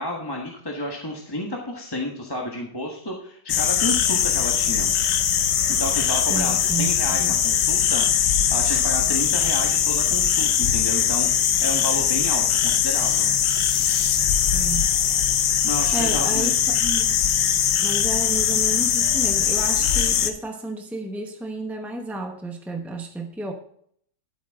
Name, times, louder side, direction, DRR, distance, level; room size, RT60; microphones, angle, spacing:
voice 1, 0.0-4.9 5.7-13.3 15.6-16.5, left 1 dB, 15° left, 0 dB, 1.2 m, -31 dB
sound 1, 3.5-20.3, left 8 dB, 85° left, 1.5 m, -21 dB
voice 2, 6.3-7.4 14.5-14.9 15.9-17.2 17.8-23.5, right 2 dB, ahead, 3 dB, 0.5 m, -32 dB
11.0 x 8.6 x 3.6 m, 0.64 s
omnidirectional pair, 1.8 m